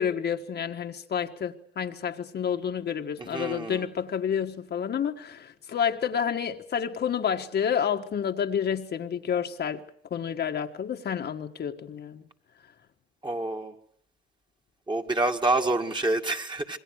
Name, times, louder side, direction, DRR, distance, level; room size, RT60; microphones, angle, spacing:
voice 1, 0.0-9.8 10.1-12.2, left 8 dB, 55° left, 1.6 m, -29 dB
voice 2, 3.2-3.9 13.2-13.7 14.9-16.8, right 2 dB, 25° right, 2.3 m, -27 dB
27.5 x 21.5 x 6.5 m
cardioid pair, 90°, 20 cm